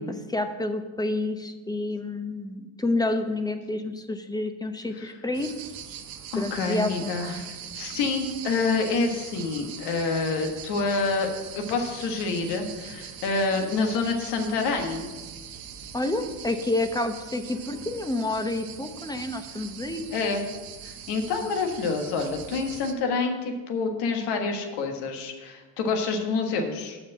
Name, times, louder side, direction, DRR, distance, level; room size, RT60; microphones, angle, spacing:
voice 1, 0.0-5.5 6.3-7.1 15.9-20.1, left 2 dB, 10° left, 7 dB, 0.8 m, -29 dB
sound 1, 5.3-22.9, right 8 dB, 55° right, 1.0 m, -41 dB
voice 2, 6.3-15.1 20.1-20.4 20.8-27.0, left 4 dB, 70° left, 4 dB, 1.6 m, -27 dB
7.6 x 5.9 x 7.2 m, 1.3 s
supercardioid pair, 90°, 42 cm